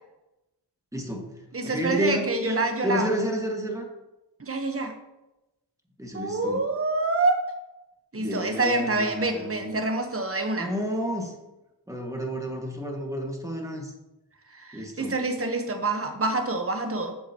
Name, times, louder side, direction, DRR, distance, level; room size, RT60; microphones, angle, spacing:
voice 1, 0.9-1.3 1.6-2.6 2.8-3.9 6.0-6.6 8.2-9.8 10.6-11.4 11.9-13.9 14.7-15.2, equal, 5° right, 1 dB, 2.0 m, -30 dB
voice 2, 1.5-3.1 4.4-4.9 6.1-7.4 8.1-10.7 14.5-17.1, right 2 dB, 30° right, 5 dB, 1.2 m, -27 dB
11.5 x 7.3 x 3.0 m, 0.97 s
wide cardioid pair, 45°, 44 cm